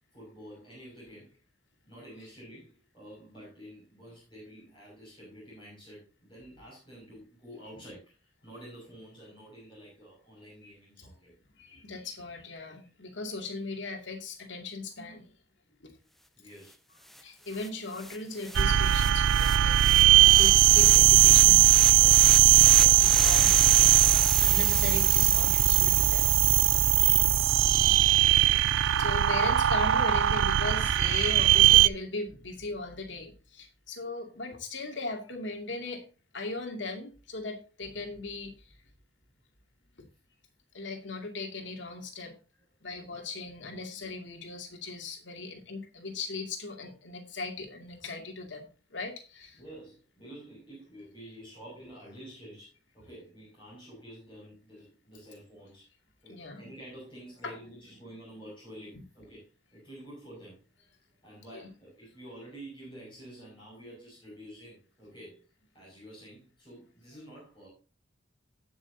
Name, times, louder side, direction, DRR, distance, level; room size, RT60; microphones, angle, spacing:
voice 1, 0.1-1.4 1.9-11.3 16.4-16.8 27.8-28.2 28.9-29.1 42.8-43.5 49.6-55.9 56.2-60.9 61.2-65.4 65.7-67.7, right 1 dB, 25° left, -6 dB, 6.0 m, -49 dB
voice 2, 11.6-15.2 15.8-15.9 17.2-26.3 28.4-28.7 29.0-36.1 36.3-38.5 40.7-42.4 42.8-49.6 56.3-56.6 57.4-57.6, left 3 dB, 75° left, 3 dB, 2.4 m, -38 dB
sound 1, 16.7-16.8 17.1-27.4, left 1 dB, ahead, 0.4 m, -38 dB
sound 2, 18.6-31.9, right 13 dB, 85° right, 0.4 m, -20 dB
18.5 x 6.3 x 2.7 m, 0.33 s
head